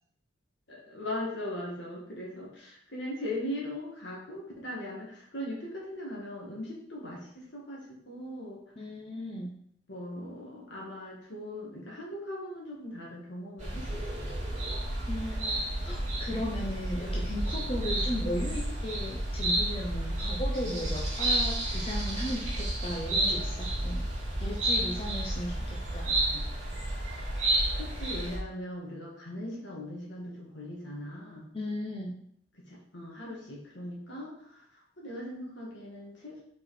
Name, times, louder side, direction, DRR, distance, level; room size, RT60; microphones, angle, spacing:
voice 1, 0.7-8.6 9.9-14.3 25.6-25.7 27.7-31.5 32.7-36.4, left 1 dB, 70° left, -3 dB, 2.1 m, -39 dB
voice 2, 8.8-9.5 15.1-24.1 24.4-26.4 31.5-32.2, left 1 dB, 30° left, -2 dB, 0.8 m, -36 dB
sound 1, 13.6-28.4, right 1 dB, 40° right, 2.3 m, -31 dB
5.2 x 4.7 x 4.4 m, 0.69 s
head